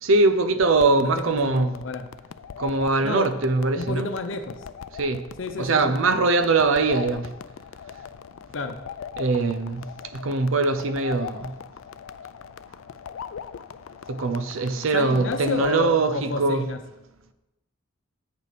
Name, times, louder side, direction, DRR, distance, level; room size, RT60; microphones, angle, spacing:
voice 1, 0.0-1.7 2.6-4.1 5.0-5.2 5.6-7.3 9.2-9.9 10.1-11.5 14.1-16.6, right 3 dB, 80° right, 0.7 m, -22 dB
sound 1, 0.6-15.9, left 7 dB, 85° left, 0.4 m, -40 dB
voice 2, 0.9-2.1 3.0-3.3 3.7-4.6 5.4-5.9 8.5-8.8 14.9-16.8, left 3 dB, 70° left, 0.8 m, -30 dB
8.2 x 6.6 x 5.1 m
head